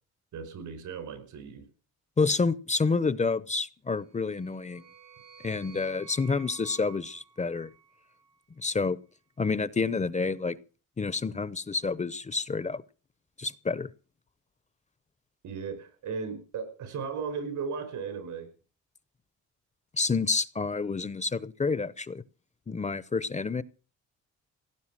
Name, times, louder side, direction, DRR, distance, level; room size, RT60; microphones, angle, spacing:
voice 1, 0.3-1.6 15.4-18.5, right 5 dB, 80° right, 11 dB, 5.1 m, -36 dB
voice 2, 2.2-4.8 5.4-7.7 8.6-9.0 9.4-10.6 11.0-12.8 13.4-13.9 19.9-22.2 22.7-23.6, left 4 dB, 25° left, 18 dB, 0.8 m, -29 dB
sound 1, 4.0-8.4, right 6 dB, 60° right, 1.8 m, -53 dB
17.0 x 9.3 x 7.5 m, 0.38 s
cardioid pair, 90°, 30 cm